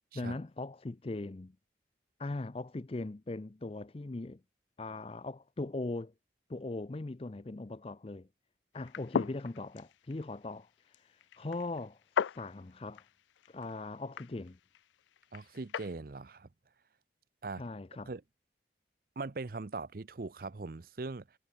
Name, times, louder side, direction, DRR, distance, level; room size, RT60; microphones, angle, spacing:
voice 1, 0.1-1.6 2.2-4.4 4.8-6.1 6.5-8.3 8.7-12.0 12.3-13.0 13.5-14.6 17.6-18.1, left 2 dB, 30° left, 0.5 m, -40 dB
sound 1, 8.8-15.9, left 7 dB, 90° left, 0.4 m, -39 dB
voice 2, 15.3-16.5 17.4-17.6 18.1-18.2 19.2-21.4, right 3 dB, 50° right, 0.6 m, -41 dB
head